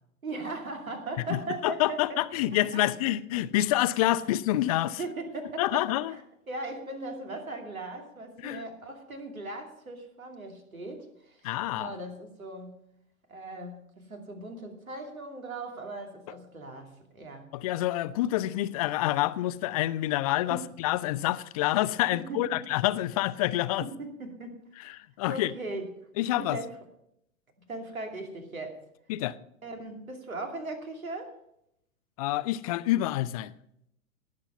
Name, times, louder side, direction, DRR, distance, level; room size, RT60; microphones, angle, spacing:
voice 1, 0.2-2.8 5.0-12.8 13.3-17.5 20.5-20.7 22.1-22.7 23.8-24.6 25.3-25.9 26.4-26.8 27.7-28.8 29.6-31.4, right 2 dB, 80° right, 2.7 m, -39 dB
voice 2, 1.6-5.0 5.6-6.1 8.4-8.6 11.4-11.9 17.5-23.9 24.8-25.5 26.2-26.6 29.1-29.4 32.2-33.5, left 15 dB, 30° left, 0.5 m, -27 dB
18.0 x 7.4 x 5.3 m
figure-of-eight pair, 105°, 42 cm